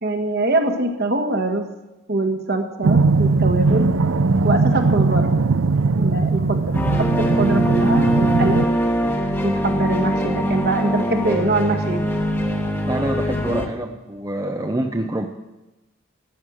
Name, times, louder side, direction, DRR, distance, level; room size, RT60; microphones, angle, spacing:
voice 1, 0.0-1.7 2.1-3.9 4.4-5.4 5.9-8.7 9.4-12.0, right 2 dB, 50° right, 6 dB, 1.4 m, -23 dB
sound 1, 2.8-8.7, right 3 dB, 70° right, 0.5 m, -19 dB
sound 2, 6.7-13.7, equal, 10° left, 1.2 m, -22 dB
voice 2, 12.9-15.3, right 1 dB, 15° right, 4 dB, 0.6 m, -26 dB
14.0 x 9.3 x 6.4 m, 1.0 s
head